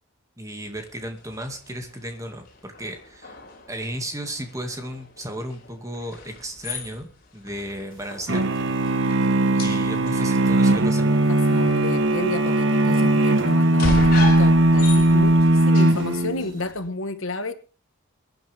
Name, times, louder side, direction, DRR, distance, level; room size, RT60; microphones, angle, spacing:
voice 1, 0.4-3.4 3.7-8.5 9.5-11.3, right 1 dB, 15° right, 5 dB, 2.2 m, -34 dB
sound 1, 0.6-16.9, left 2 dB, 45° left, 3.9 m, -37 dB
sound 2, 8.3-16.6, right 1 dB, 60° right, 1.3 m, -19 dB
voice 2, 11.3-17.5, left 2 dB, 65° left, 10 dB, 1.4 m, -31 dB
23.5 x 10.5 x 3.6 m, 0.34 s
head